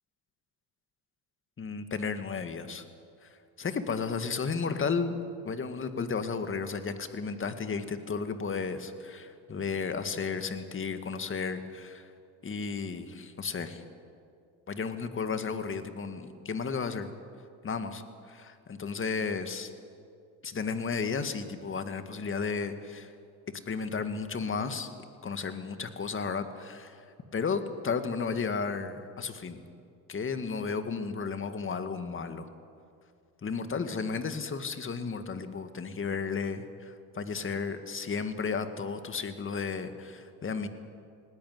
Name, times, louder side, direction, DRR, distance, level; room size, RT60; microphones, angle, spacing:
voice 1, 1.6-2.8 3.2-3.3 3.6-5.2 5.4-12.1 12.4-13.8 14.7-17.1 17.6-19.7 20.4-23.1 23.7-24.9 25.2-27.0 27.3-29.6 30.1-32.5 33.4-40.7, left 5 dB, 30° left, 9 dB, 2.0 m, -33 dB
19.5 x 17.5 x 9.6 m, 2.4 s
supercardioid pair, 85°, 43 cm